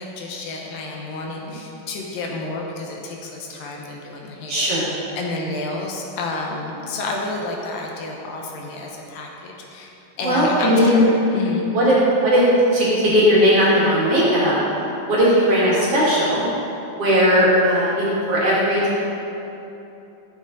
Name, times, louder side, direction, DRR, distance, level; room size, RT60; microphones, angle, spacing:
voice 1, 0.0-4.7 5.2-9.9 10.2-11.7, left 2 dB, 75° left, 0 dB, 2.6 m, -30 dB
voice 2, 4.5-4.9 10.2-11.0 11.7-11.9 12.2-12.5 12.7-14.5 15.1-16.4 17.0-19.0, equal, 45° right, -8 dB, 2.6 m, -17 dB
13.0 x 7.5 x 4.0 m, 3.0 s
omnidirectional pair, 4.2 m